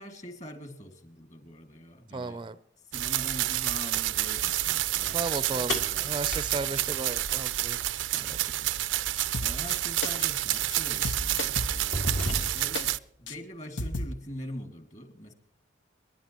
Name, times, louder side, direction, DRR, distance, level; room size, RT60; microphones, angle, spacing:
voice 1, 0.0-2.4 2.8-5.2 5.5-6.2 6.6-6.8 8.1-8.8 9.4-15.3, equal, 40° left, 7 dB, 2.2 m, -44 dB
voice 2, 2.1-2.6 5.1-8.4, right 3 dB, 25° right, 15 dB, 0.4 m, -35 dB
sound 1, 2.9-13.0, right 14 dB, 85° right, 0.5 m, -29 dB
sound 2, 5.7-7.9 9.7-9.8 10.7-10.9 11.4-12.9, left 1 dB, 65° left, 2.3 m, -34 dB
sound 3, 9.2-9.8 10.0-10.3 10.5-10.8 11.0-12.8 13.3-13.4 13.8-14.1, left 1 dB, 90° left, 1.0 m, -34 dB
29.5 x 11.0 x 3.0 m, 0.73 s
head